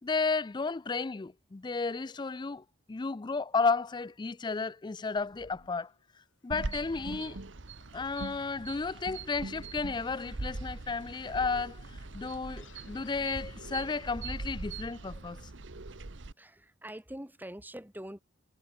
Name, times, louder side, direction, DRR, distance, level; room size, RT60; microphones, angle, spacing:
voice 1, 0.0-5.9 6.4-7.4 7.9-11.8 12.1-15.4, left 4 dB, 25° left, 0.4 m, -33 dB
sound 1, 5.2-14.6, left 2 dB, 75° left, 5.9 m, -61 dB
sound 2, 6.5-16.3, right 3 dB, 70° right, 1.2 m, -41 dB
voice 2, 16.4-18.2, right 1 dB, 10° right, 5.3 m, -44 dB
head